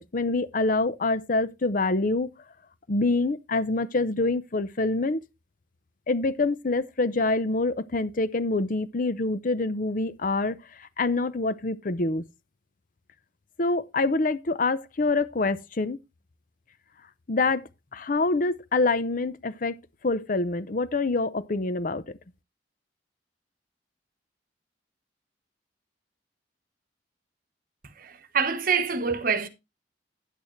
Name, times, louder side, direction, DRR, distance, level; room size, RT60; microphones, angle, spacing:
voice 1, 0.0-2.3 2.9-5.2 6.1-12.2 13.6-16.0 17.3-19.8 20.0-22.2, left 3 dB, 50° left, 0.7 m, -26 dB
voice 2, 28.0-29.5, right 5 dB, 50° right, 1.2 m, -26 dB
9.9 x 8.8 x 3.2 m
head